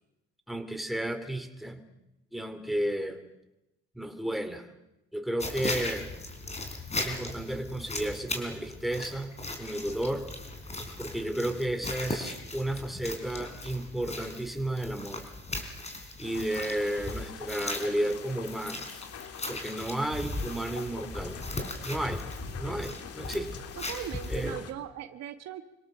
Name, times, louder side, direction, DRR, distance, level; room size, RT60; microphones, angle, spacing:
voice 1, 0.5-1.9 2.3-3.2 3.9-4.7 5.1-6.1 6.9-10.3 11.0-15.2 16.2-19.1 19.5-21.4 21.8-22.2 22.6-23.6 24.3-24.6, right 1 dB, ahead, 7 dB, 2.8 m, -33 dB
sound 1, 5.4-24.5, left 2 dB, 20° left, 4.2 m, -38 dB
sound 2, 16.2-24.7, left 8 dB, 55° left, 2.1 m, -45 dB
voice 2, 23.8-25.6, right 10 dB, 60° right, 9 dB, 1.4 m, -39 dB
26.0 x 17.5 x 6.7 m, 0.91 s
supercardioid pair, 85°, 29 cm